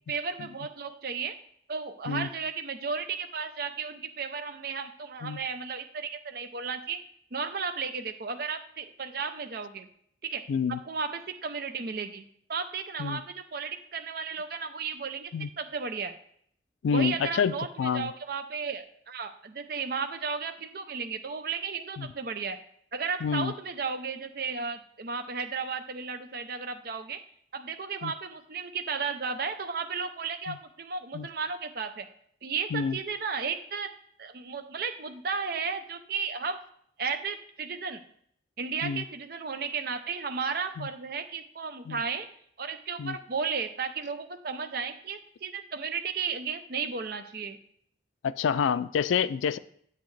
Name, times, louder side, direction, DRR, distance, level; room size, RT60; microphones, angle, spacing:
voice 1, 0.1-1.3 1.7-7.0 7.3-9.9 10.2-10.4 10.7-15.3 15.6-16.1 16.9-22.6 22.9-27.2 27.5-32.1 32.4-33.9 34.2-36.6 37.0-38.0 38.6-42.3 42.6-47.6, right 5 dB, 55° right, 7 dB, 0.6 m, -34 dB
voice 2, 10.5-10.8 13.0-13.2 15.3-15.5 16.8-18.1 22.0-22.1 23.2-23.5 28.0-28.1 30.5-30.6 31.1-31.3 32.7-33.0 38.8-39.0 40.8-40.9 41.9-42.0 43.0-43.2 48.2-49.6, left 6 dB, 85° left, 14 dB, 0.3 m, -28 dB
8.4 x 8.2 x 3.2 m, 0.65 s
head